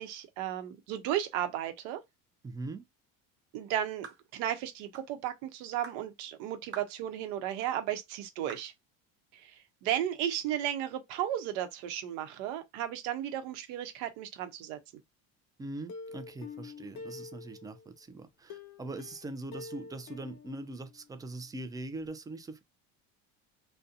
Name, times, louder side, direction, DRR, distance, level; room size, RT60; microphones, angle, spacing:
voice 1, 0.0-2.0 3.5-8.7 9.3-14.8, right 11 dB, 75° right, 0.8 m, -34 dB
voice 2, 2.4-2.9 15.6-22.6, right 2 dB, 10° right, 0.3 m, -42 dB
sound 1, 4.0-4.3 4.9-5.1 5.8-6.0 6.7-7.0 7.6-7.7 8.5-8.7, right 6 dB, 30° right, 0.9 m, -46 dB
Plucked string instrument, 15.9-17.9 18.5-21.3 21.6-21.7 22.1-22.2, left 4 dB, 45° left, 0.6 m, -47 dB
2.4 x 2.2 x 2.7 m
supercardioid pair, 100°, 39 cm